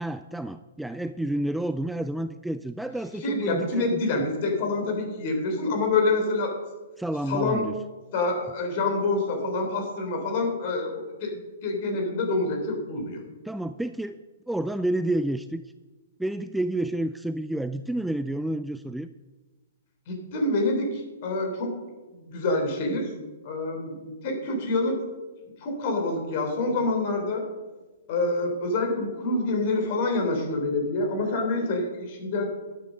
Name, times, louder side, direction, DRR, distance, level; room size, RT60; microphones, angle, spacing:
voice 1, 0.0-4.2 7.0-7.7 13.4-14.2 14.5-15.6 16.2-19.1, right 1 dB, 5° right, 11 dB, 0.3 m, -30 dB
voice 2, 3.2-6.6 7.3-7.7 8.1-13.2 20.1-21.7 22.1-23.1 23.4-25.0 25.6-27.4 28.1-32.5, left 2 dB, 45° left, 3 dB, 3.6 m, -27 dB
11.5 x 9.0 x 5.5 m, 1.2 s
figure-of-eight pair, 120°, 0 cm